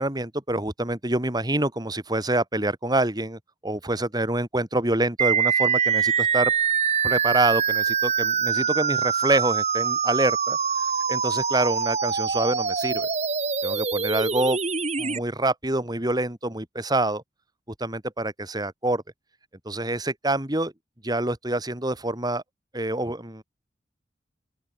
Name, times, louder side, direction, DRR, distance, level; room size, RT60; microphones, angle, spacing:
voice 1, 0.0-6.5 7.0-10.6 11.1-13.1 13.6-14.6 15.0-17.2 17.8-19.0 19.6-20.7 21.0-22.4 22.7-23.4, right 2 dB, 20° right, 3.0 m, -26 dB
sound 1, 5.2-15.2, right 6 dB, 35° right, 2.3 m, -24 dB
open air
head